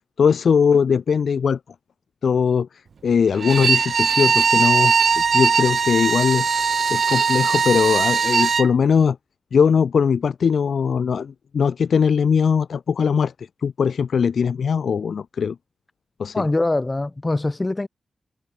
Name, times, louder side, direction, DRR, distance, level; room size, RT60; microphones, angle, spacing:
voice 1, 0.2-1.6 2.2-6.5 6.9-9.2 9.5-15.6 16.2-16.4, left 6 dB, 75° left, 0.4 m, -20 dB
Bowed string instrument, 3.3-8.7, right 5 dB, 65° right, 0.8 m, -19 dB
voice 2, 16.3-17.9, left 2 dB, 25° left, 0.7 m, -23 dB
cardioid pair, 65°, 0 cm